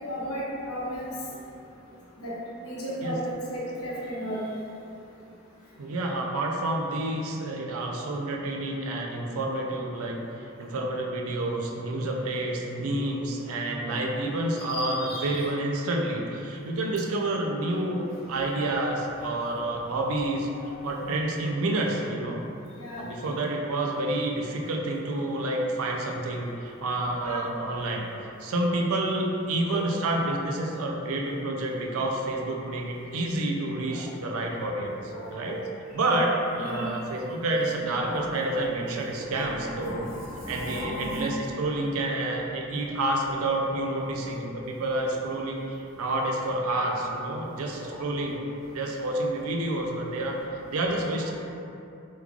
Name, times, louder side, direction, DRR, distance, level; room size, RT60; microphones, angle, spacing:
voice 1, 0.0-1.1 2.2-2.4 2.6-4.5 14.6-15.4 20.6-20.7 22.8-23.1 27.2-27.5 29.6-30.3 31.2-31.3 31.9-32.0 33.1-33.2 33.9-34.0 35.1-35.6 36.6-36.9 37.9-38.5 38.8-38.9 39.2-41.3 42.3-42.4 43.7-43.8 47.8-48.0 51.1-51.3, equal, 85° left, -7 dB, 0.9 m, -36 dB
voice 2, 5.8-10.2 10.6-20.5 20.8-22.4 23.0-28.1 28.4-35.6 35.9-40.1 40.5-48.4 48.7-50.4 50.7-51.3, right 2 dB, 80° right, 0 dB, 0.4 m, -29 dB
3.1 x 2.3 x 3.6 m, 2.7 s
head